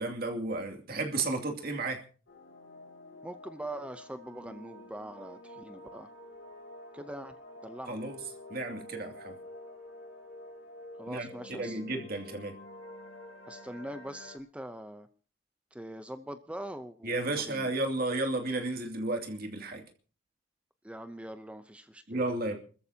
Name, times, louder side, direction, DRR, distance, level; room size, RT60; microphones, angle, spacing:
voice 1, 0.0-2.0 7.9-8.2 8.5-9.4 11.1-11.3 11.6-12.6 17.0-19.8 22.1-22.6, right 2 dB, 50° right, 2.5 m, -33 dB
sound 1, 2.3-14.4, left 1 dB, 85° left, 3.5 m, -49 dB
voice 2, 3.2-6.1 6.9-7.4 7.6-7.9 11.0-11.8 13.5-15.1 15.7-17.7 20.8-22.2, right 1 dB, 5° right, 0.6 m, -42 dB
28.5 x 14.0 x 2.8 m
head